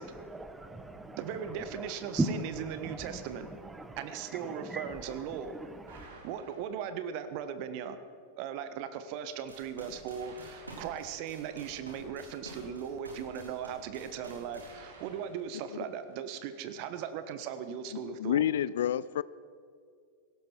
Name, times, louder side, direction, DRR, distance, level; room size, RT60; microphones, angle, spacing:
voice 1, 0.0-6.1, right 2 dB, 10° right, 1.3 m, -39 dB
voice 2, 1.2-2.4 2.7-3.5 4.0-5.6 6.2-8.0 8.4-18.5, right 8 dB, 45° right, 1.3 m, -38 dB
sound 1, 5.9-7.3 10.0-16.5, right 3 dB, 60° right, 3.7 m, -55 dB
sound 2, 9.3-14.7, right 2 dB, 85° right, 3.8 m, -49 dB
voice 3, 18.2-19.2, left 10 dB, 65° left, 0.3 m, -28 dB
17.5 x 17.0 x 4.6 m
figure-of-eight pair, 90°, 0 cm